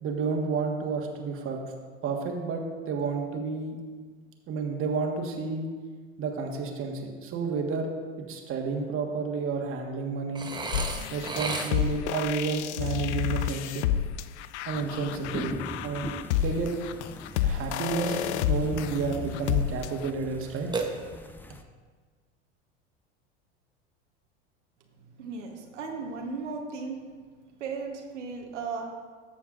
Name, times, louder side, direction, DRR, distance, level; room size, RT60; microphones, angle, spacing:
voice 1, 0.0-1.6 2.0-3.8 4.5-5.7 6.2-7.9 8.2-10.5 11.1-13.8 14.6-16.7 17.4-20.7, right 4 dB, 40° right, 2 dB, 1.5 m, -31 dB
Burping eructation, 10.4-12.1 20.7-21.5, right 3 dB, 10° right, 0.9 m, -33 dB
sound 1, 10.7-20.1, left 10 dB, 70° left, 0.5 m, -30 dB
sound 2, 14.7-21.6, left 2 dB, 5° left, 0.5 m, -42 dB
voice 2, 25.2-27.0 27.6-28.9, right 4 dB, 80° right, 1 dB, 1.3 m, -35 dB
13.5 x 7.1 x 2.5 m, 1.5 s
hypercardioid pair, 85°, 35 cm